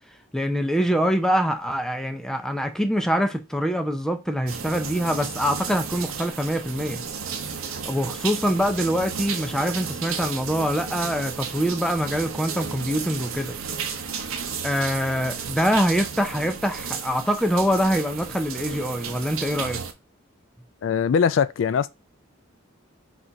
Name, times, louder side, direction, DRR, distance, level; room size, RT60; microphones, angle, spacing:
voice 1, 0.3-7.0 7.8-13.6 14.6-19.8, equal, 5° left, 0.5 m, -24 dB
sound 1, 4.5-19.9, right 6 dB, 90° right, 0.7 m, -33 dB
voice 2, 20.8-21.9, left 6 dB, 65° left, 0.3 m, -21 dB
4.0 x 2.5 x 4.5 m
head